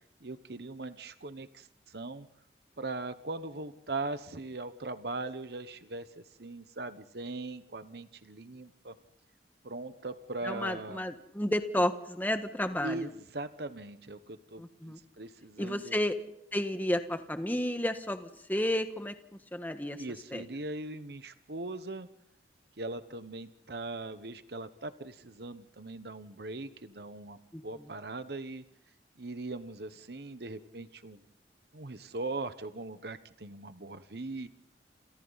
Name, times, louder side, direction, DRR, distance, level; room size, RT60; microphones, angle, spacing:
voice 1, 0.2-2.3 2.8-9.0 9.6-11.0 12.8-16.0 20.0-22.1 22.8-28.6 29.2-31.2 31.7-34.5, right 2 dB, 60° right, 11 dB, 1.0 m, -40 dB
voice 2, 10.4-13.1 14.6-15.0 15.6-16.1 16.5-19.1 19.5-20.0 20.3-20.4 27.5-27.9, left 1 dB, 10° left, 7 dB, 1.4 m, -32 dB
29.0 x 28.5 x 4.1 m, 0.79 s
head